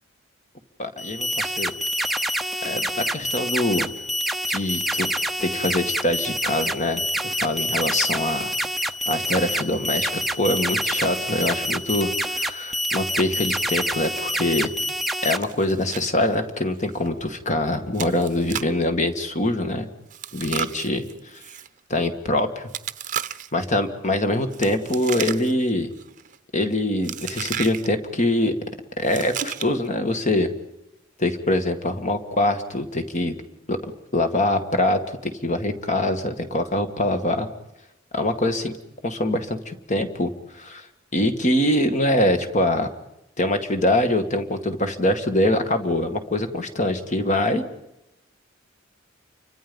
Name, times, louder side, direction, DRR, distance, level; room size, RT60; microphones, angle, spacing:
voice 1, 0.8-1.7 2.6-3.9 4.5-5.1 5.4-8.5 9.1-14.7 15.2-19.9 20.3-21.0 21.3-21.4 21.9-22.7 23.5-25.9 26.5-28.5 29.0-30.5 31.2-33.3 33.7-33.8 34.1-37.5 38.1-38.7 39.0-40.9 41.1-42.9 43.4-47.6, left 1 dB, 35° left, 7 dB, 2.2 m, -24 dB
sound 1, 1.0-15.4, equal, ahead, 0.9 m, -27 dB
Chewing mastication, 15.4-16.1 16.3-16.4 16.9-17.1 17.9-18.8 20.1-21.7 22.7-23.6 24.5-25.7 26.0-26.4 27.0-27.9 29.0-29.9, right 9 dB, 40° right, 0.9 m, -33 dB
30.0 x 24.5 x 5.5 m, 0.88 s
head